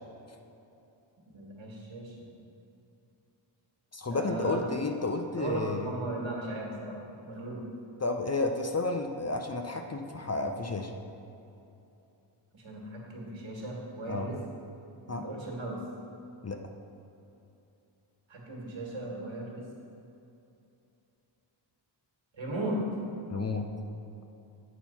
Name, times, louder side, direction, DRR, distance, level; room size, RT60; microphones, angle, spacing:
voice 1, 1.3-2.3 4.1-4.6 5.4-7.0 7.2-7.6 12.5-14.4 15.1-15.8 18.3-19.6 22.4-22.8, right 1 dB, 70° right, -2 dB, 1.8 m, -36 dB
voice 2, 3.9-5.9 8.0-10.9 14.1-14.3 15.1-15.3 16.4-16.6 23.3-23.7, left 3 dB, 35° left, 4 dB, 0.5 m, -31 dB
9.0 x 4.4 x 5.6 m, 2.8 s
wide cardioid pair, 90°, 48 cm